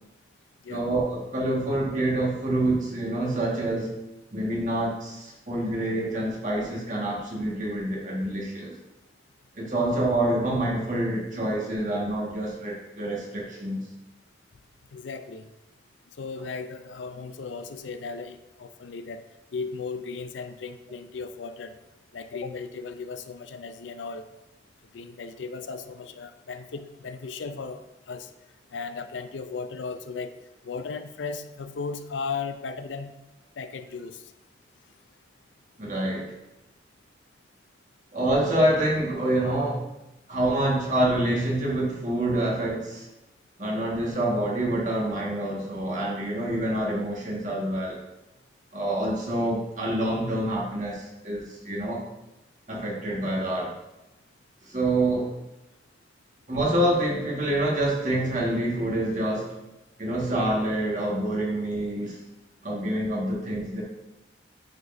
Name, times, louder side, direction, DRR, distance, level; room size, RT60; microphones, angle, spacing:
voice 1, 0.7-3.9 4.3-8.7 9.5-13.8 35.8-36.3 38.1-39.8 40.3-43.1 43.6-48.0 48.7-52.0 52.7-53.7 54.6-55.3 56.5-59.5 60.0-62.2 62.6-63.8, right 1 dB, 40° right, -3 dB, 1.7 m, -27 dB
voice 2, 14.9-15.5 16.2-19.2 19.5-21.8 22.1-24.3 24.9-28.3 28.7-30.4 30.6-33.1 33.6-34.3, left 4 dB, 85° left, 10 dB, 0.5 m, -36 dB
9.6 x 5.2 x 2.6 m, 0.94 s
head